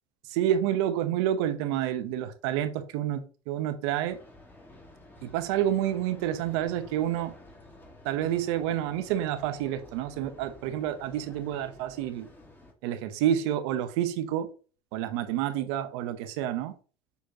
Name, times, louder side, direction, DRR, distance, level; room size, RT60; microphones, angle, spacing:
voice 1, 0.3-4.2 5.2-7.3 8.0-12.3 12.8-14.5 14.9-16.7, right 11 dB, 80° right, 1.0 m, -29 dB
sound 1, 4.0-12.7, left 1 dB, 15° left, 2.0 m, -51 dB
7.0 x 4.7 x 3.0 m
supercardioid pair, 100°, 14 cm